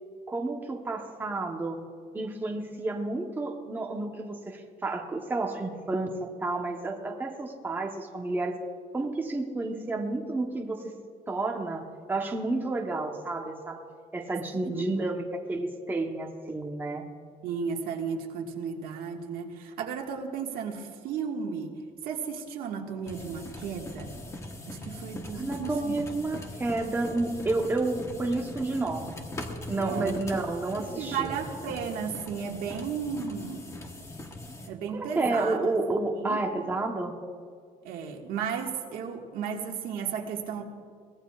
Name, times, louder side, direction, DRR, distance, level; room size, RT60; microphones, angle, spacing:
voice 1, 0.3-1.8 2.1-8.6 8.9-10.9 11.3-13.8 14.1-17.0 25.3-29.3 29.7-31.3 34.9-37.1, right 2 dB, 15° right, 2 dB, 1.0 m, -30 dB
voice 2, 14.6-15.2 17.4-21.7 22.0-24.1 24.7-26.0 26.3-26.4 29.8-30.2 30.8-33.7 34.7-35.6 36.1-36.4 37.8-40.6, right 6 dB, 90° right, 1 dB, 1.7 m, -34 dB
sound 1, 23.0-34.7, left 1 dB, 20° left, 1.1 m, -41 dB
23.0 x 17.5 x 2.4 m, 2.1 s
cardioid pair, 175°, 15 cm